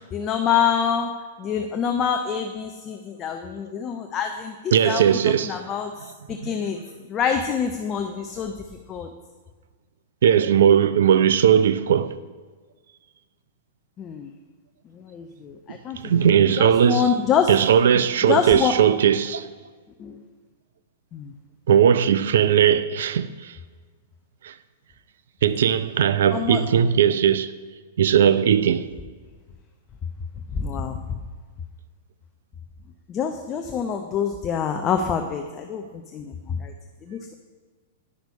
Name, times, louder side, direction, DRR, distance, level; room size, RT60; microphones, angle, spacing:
voice 1, 0.1-1.1 1.4-5.9 6.3-6.8 7.1-8.6 8.9-9.1 14.0-14.3 14.9-16.3 16.6-17.5 18.3-18.7 20.0-20.2 21.1-21.3 26.3-26.6 30.5-31.2 33.1-36.7 37.1-37.3, left 7 dB, 30° left, 0.7 m, -26 dB
voice 2, 4.7-5.6 6.3-6.5 10.2-12.2 16.0-17.1 17.5-19.5 21.7-23.5 24.4-24.5 25.4-27.5 28.0-28.9, right 8 dB, 65° right, 0.5 m, -18 dB
9.9 x 6.0 x 5.3 m
figure-of-eight pair, 105°, 0 cm